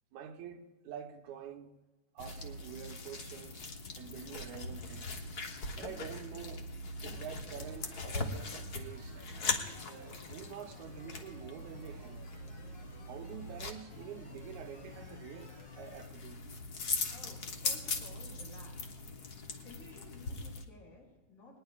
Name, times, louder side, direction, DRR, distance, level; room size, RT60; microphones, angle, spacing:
voice 1, 0.1-1.7 2.2-3.7 4.0-5.2 5.8-6.6 7.0-9.3 9.9-12.2 13.1-16.4, right 8 dB, 80° right, 2.3 m, -47 dB
sound 1, 2.2-20.6, left 3 dB, 60° left, 1.0 m, -41 dB
sound 2, 7.1-16.1, equal, 35° left, 5.0 m, -58 dB
voice 2, 17.1-18.9 19.6-21.6, left 2 dB, 80° left, 6.4 m, -55 dB
20.5 x 19.5 x 2.4 m
omnidirectional pair, 3.4 m